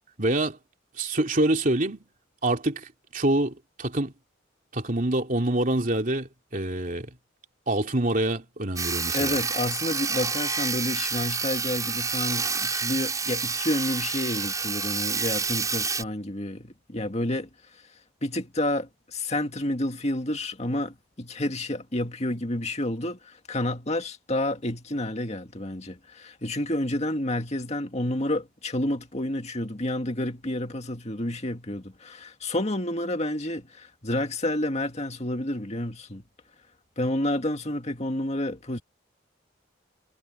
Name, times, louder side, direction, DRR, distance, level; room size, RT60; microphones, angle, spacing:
voice 1, 0.2-0.6 1.0-2.0 2.4-4.1 4.7-7.1 7.7-9.4, right 1 dB, 45° right, 3.1 m, -26 dB
Sawing, 8.8-16.0, right 5 dB, 20° right, 6.0 m, -28 dB
voice 2, 9.1-17.5 18.2-36.2 37.0-38.8, left 1 dB, 35° left, 2.1 m, -29 dB
head